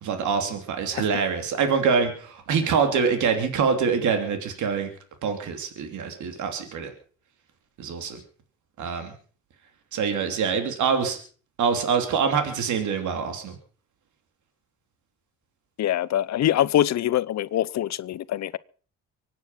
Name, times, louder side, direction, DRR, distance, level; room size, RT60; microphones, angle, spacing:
voice 1, 0.0-4.9 5.2-6.9 7.8-8.2 8.8-9.1 9.9-11.2 11.6-13.6, right 6 dB, 75° right, 3.0 m, -25 dB
voice 2, 15.8-18.6, left 12 dB, 65° left, 0.7 m, -24 dB
24.0 x 9.4 x 5.7 m
cardioid pair, 90°, 30 cm